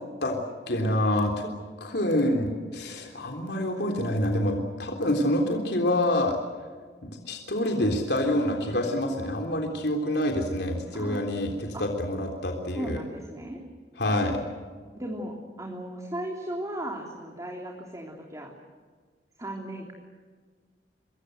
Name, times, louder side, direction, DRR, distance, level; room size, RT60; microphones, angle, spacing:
voice 1, 0.7-1.5 1.8-6.4 7.0-13.0 14.0-14.4, left 1 dB, 65° left, 2 dB, 3.6 m, -27 dB
voice 2, 10.9-11.3 11.7-11.8 12.7-13.6 14.9-18.5 19.4-19.9, right 1 dB, 20° right, 0 dB, 3.3 m, -36 dB
26.0 x 22.5 x 8.0 m, 1.5 s
head